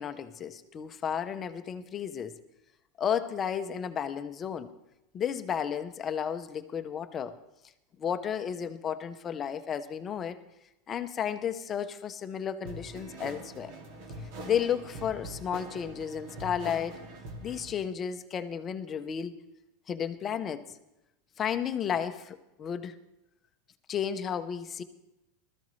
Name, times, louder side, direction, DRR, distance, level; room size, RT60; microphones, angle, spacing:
voice 1, 0.0-2.3 3.0-4.7 5.1-7.4 8.0-10.4 10.9-13.7 14.4-17.0 17.4-19.4 19.9-20.7 21.4-22.9 23.9-24.8, left 8 dB, 20° left, 10 dB, 0.7 m, -33 dB
sound 1, 12.6-17.7, right 1 dB, 60° right, 2.4 m, -43 dB
20.0 x 13.5 x 3.2 m, 0.91 s
supercardioid pair, 165°, 0 cm